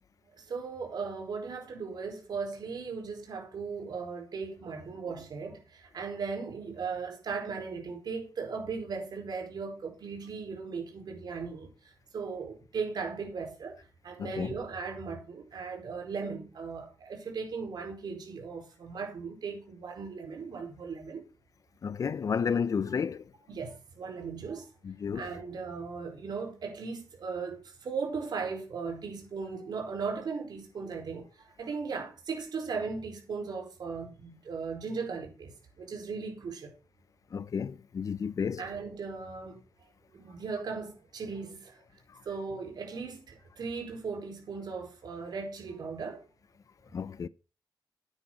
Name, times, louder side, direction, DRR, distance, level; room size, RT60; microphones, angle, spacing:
voice 1, 0.4-11.7 12.1-21.3 23.5-24.7 25.1-36.7 38.6-39.6 40.1-41.8 42.2-46.3, right 5 dB, 70° right, 4.7 m, -37 dB
voice 2, 14.2-14.5 21.8-23.2 24.8-25.3 37.3-38.6 42.1-42.2 46.9-47.3, left 6 dB, 50° left, 0.6 m, -32 dB
11.0 x 9.6 x 4.0 m
wide cardioid pair, 140°, 7 cm